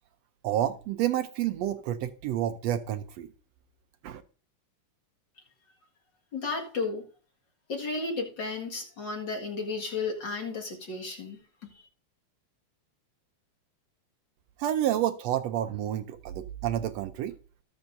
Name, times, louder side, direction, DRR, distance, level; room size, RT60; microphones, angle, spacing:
voice 1, 0.4-3.3 4.0-4.2 14.6-17.3, right 12 dB, 75° right, 1.6 m, -29 dB
voice 2, 6.3-7.0 7.7-11.8, left 4 dB, 40° left, 2.1 m, -33 dB
18.5 x 7.1 x 2.6 m
omnidirectional pair, 3.6 m